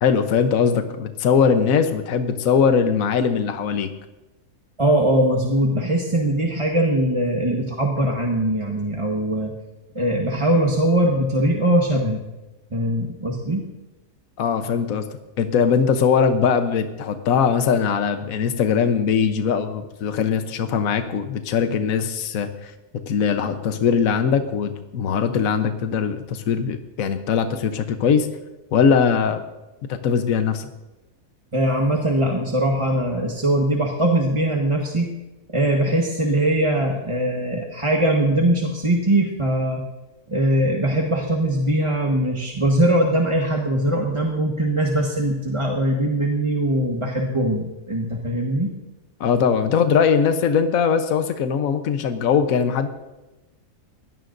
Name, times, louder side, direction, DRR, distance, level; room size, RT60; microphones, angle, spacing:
voice 1, 0.0-3.9 14.4-15.1 15.4-22.7 23.1-28.3 28.7-29.4 29.9-30.7 49.2-52.9, left 6 dB, 65° left, 8 dB, 1.3 m, -20 dB
voice 2, 4.8-9.5 9.9-12.2 12.7-13.7 31.5-35.1 35.5-39.8 40.3-48.7, right 1 dB, 20° right, 0 dB, 1.3 m, -21 dB
22.0 x 17.0 x 2.6 m, 1.0 s
omnidirectional pair, 1.6 m